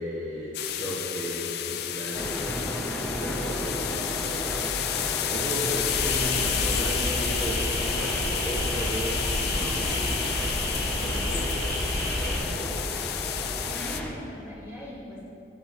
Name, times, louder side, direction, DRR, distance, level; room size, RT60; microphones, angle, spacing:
voice 1, 0.0-12.7, equal, 35° right, -8 dB, 1.2 m, -36 dB
sound 1, 0.5-14.0, left 11 dB, 60° left, 0.4 m, -31 dB
sound 2, 2.1-14.1, equal, 5° left, 0.7 m, -34 dB
sound 3, 5.9-12.4, equal, 70° right, 1.9 m, -30 dB
voice 2, 13.6-15.3, equal, 15° right, -8 dB, 2.1 m, -41 dB
11.0 x 7.7 x 3.1 m, 2.7 s
head